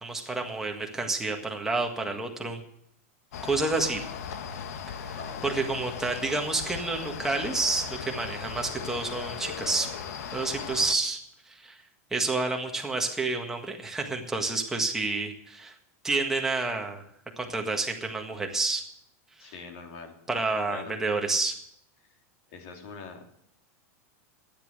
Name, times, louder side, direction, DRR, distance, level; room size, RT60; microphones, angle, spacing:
voice 1, 0.0-2.6 3.4-4.0 5.1-9.9 10.3-11.2 11.5-11.8 12.1-15.7 16.0-17.0 17.4-18.8 19.4-19.5 20.3-21.5, right 3 dB, 5° right, 1 dB, 1.7 m, -29 dB
sound 1, 3.3-10.9, left 7 dB, 85° left, 1.4 m, -38 dB
voice 2, 5.1-5.7 19.4-20.1 20.7-21.0 22.5-23.4, left 5 dB, 55° left, 3 dB, 3.2 m, -43 dB
13.5 x 10.5 x 6.7 m, 0.69 s
supercardioid pair, 165°, 8 cm